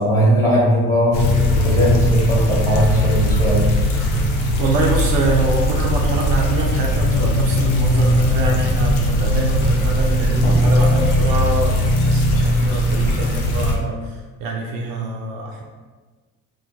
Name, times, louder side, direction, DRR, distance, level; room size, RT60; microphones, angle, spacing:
voice 1, 0.0-3.7, equal, 10° left, -6 dB, 1.1 m, -19 dB
sound 1, 1.1-13.8, left 1 dB, 70° left, 0.6 m, -18 dB
voice 2, 4.6-15.6, right 3 dB, 60° right, 0 dB, 0.5 m, -24 dB
2.2 x 2.1 x 2.7 m, 1.3 s
hypercardioid pair, 60°, 40 cm